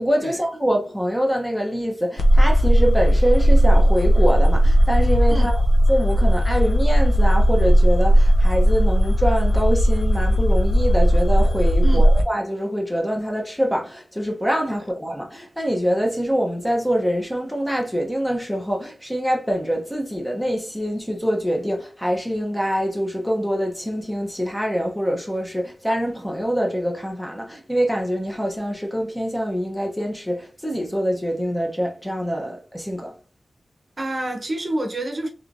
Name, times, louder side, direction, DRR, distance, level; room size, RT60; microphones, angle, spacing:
voice 1, 0.0-5.5 5.9-33.1, equal, 5° left, 0.8 m, -24 dB
sound 1, 2.2-12.2, equal, 70° left, 0.4 m, -16 dB
voice 2, 34.0-35.3, right 1 dB, 45° right, 0.8 m, -27 dB
3.1 x 3.0 x 2.6 m
wide cardioid pair, 65°, 0 cm